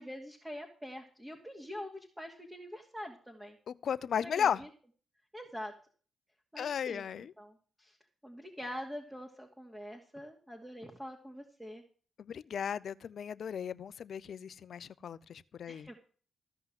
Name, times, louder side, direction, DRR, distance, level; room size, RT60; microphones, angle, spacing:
voice 1, 0.0-3.6 4.2-4.5 5.3-5.7 6.5-7.0 7.4-8.0 8.2-11.8 15.7-16.0, equal, 5° right, 2.7 m, -45 dB
voice 2, 3.7-4.6 6.6-7.3 12.2-15.9, left 8 dB, 70° left, 0.6 m, -35 dB
15.0 x 5.6 x 7.8 m
supercardioid pair, 50°, 0 cm